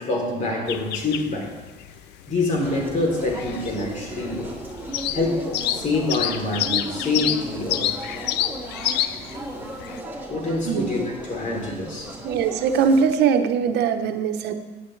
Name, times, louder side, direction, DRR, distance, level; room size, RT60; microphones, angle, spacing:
voice 1, 0.0-1.5 2.3-4.6 5.1-7.9 10.3-12.2, left 2 dB, 50° left, 1 dB, 3.2 m, -26 dB
sound 1, 0.7-10.0, left 11 dB, 85° left, 0.6 m, -29 dB
sound 2, 2.6-13.0, right 1 dB, 10° right, 2.6 m, -36 dB
voice 2, 12.2-14.5, right 6 dB, 80° right, 7 dB, 0.9 m, -21 dB
15.0 x 9.2 x 3.2 m, 1.3 s
cardioid pair, 110°, 17 cm